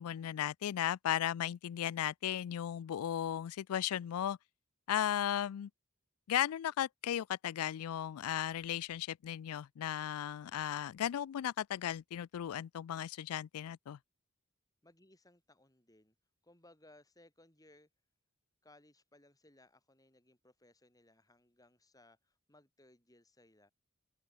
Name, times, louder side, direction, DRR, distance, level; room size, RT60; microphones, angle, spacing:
voice 1, 0.0-4.4 4.9-5.7 6.3-14.0, left 10 dB, 85° left, 0.3 m, -36 dB
voice 2, 14.8-16.1 16.4-17.9 18.6-23.7, left 1 dB, 15° left, 5.9 m, -64 dB
open air
head